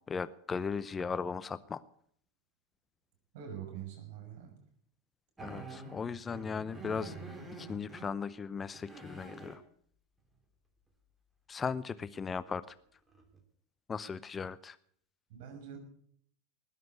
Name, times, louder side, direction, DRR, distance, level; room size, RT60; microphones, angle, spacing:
voice 1, 0.1-1.8 5.4-7.1 7.6-9.6 11.5-12.7 13.9-14.8, left 5 dB, 20° left, 16 dB, 0.7 m, -37 dB
voice 2, 3.3-4.6 15.3-15.8, right 9 dB, 60° right, 5 dB, 6.3 m, -44 dB
sound 1, 5.4-8.1 8.6-9.6 12.4-12.5 13.1-13.4, right 3 dB, 10° right, 3.2 m, -46 dB
19.5 x 7.7 x 8.2 m, 0.63 s
hypercardioid pair, 90°, 0 cm